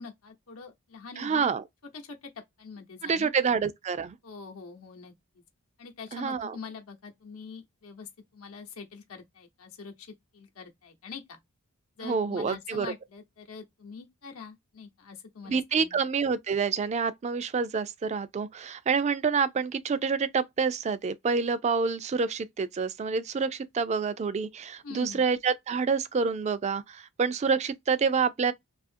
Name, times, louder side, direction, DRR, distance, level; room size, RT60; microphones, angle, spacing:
voice 1, 0.0-1.5 1.9-2.3 2.6-3.3 4.2-5.1 5.8-11.4 12.0-16.0 24.8-25.2, left 5 dB, 85° left, 0.8 m, -44 dB
voice 2, 1.2-1.6 3.0-4.2 6.1-6.6 12.0-12.9 15.5-28.5, right 5 dB, 30° right, 0.3 m, -27 dB
2.7 x 2.4 x 2.4 m
head